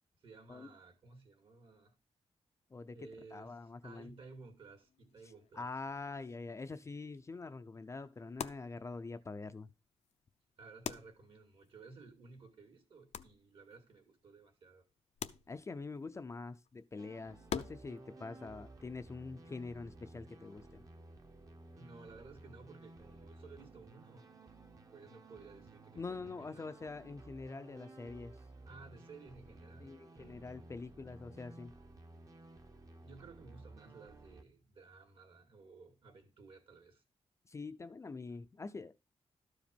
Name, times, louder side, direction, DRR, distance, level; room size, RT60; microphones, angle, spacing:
voice 1, 0.2-1.9 2.9-5.7 10.6-14.9 21.7-24.3 24.9-26.7 28.7-30.7 33.0-37.0, right 4 dB, 55° right, 2.4 m, -56 dB
voice 2, 3.3-4.1 5.6-9.7 15.5-20.8 26.0-28.3 29.8-31.7 37.5-39.0, left 3 dB, 25° left, 0.5 m, -45 dB
sound 1, 4.0-18.0, left 8 dB, 80° left, 0.7 m, -49 dB
sound 2, 17.0-34.4, right 2 dB, 30° right, 1.0 m, -55 dB
12.5 x 5.0 x 5.3 m
wide cardioid pair, 160°, 11 cm